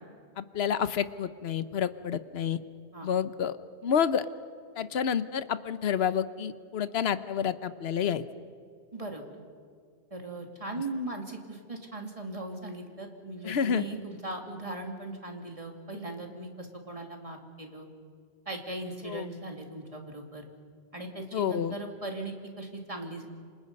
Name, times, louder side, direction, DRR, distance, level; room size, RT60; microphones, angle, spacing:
voice 1, 0.4-2.6 3.0-3.6 3.8-4.3 4.8-8.2 13.4-13.8 19.0-19.3 21.3-21.7, left 8 dB, 70° left, 13 dB, 1.1 m, -29 dB
voice 2, 8.9-9.2 10.1-17.9 18.5-20.5 20.9-23.3, right 2 dB, 30° right, 2 dB, 2.7 m, -39 dB
28.5 x 26.0 x 5.4 m, 2.2 s
omnidirectional pair, 1.1 m